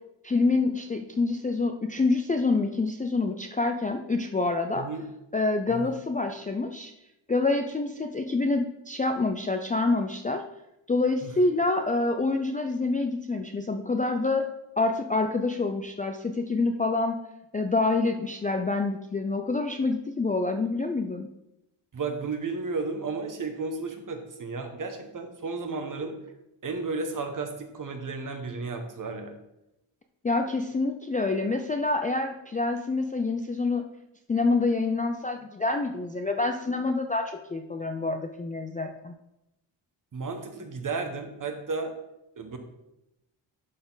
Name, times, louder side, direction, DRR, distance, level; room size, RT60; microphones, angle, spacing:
voice 1, 0.2-4.9 5.3-6.9 7.3-10.4 10.9-14.5 14.8-17.2 17.5-21.3 30.2-33.9 34.3-39.1, left 3 dB, 20° left, 5 dB, 0.3 m, -27 dB
voice 2, 4.7-5.1 5.7-5.9 11.2-11.3 21.9-26.1 26.6-29.3 40.1-41.9 42.4-42.6, right 4 dB, 40° right, 5 dB, 1.1 m, -33 dB
11.5 x 4.3 x 3.9 m, 0.88 s
wide cardioid pair, 145°, 48 cm